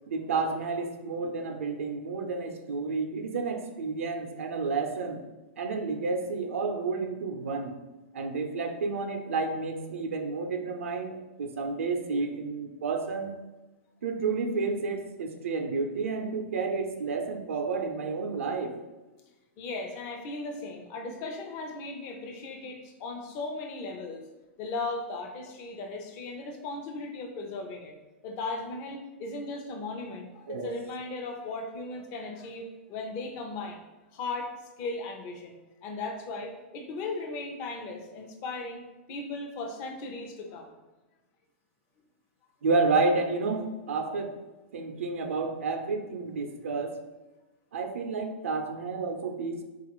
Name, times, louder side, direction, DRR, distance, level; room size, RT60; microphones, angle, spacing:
voice 1, 0.1-5.2 5.6-7.7 8.1-13.3 14.0-18.8 30.5-30.7 42.6-44.4 44.7-47.0 47.7-49.6, right 4 dB, 85° right, 5 dB, 0.5 m, -30 dB
voice 2, 19.6-24.2 24.6-27.9 28.2-33.8 34.1-34.5 34.8-35.5 35.8-38.8 39.1-40.7, left 3 dB, 45° left, 2 dB, 0.6 m, -37 dB
3.9 x 2.4 x 2.9 m, 1.1 s
hypercardioid pair, 125°, 7 cm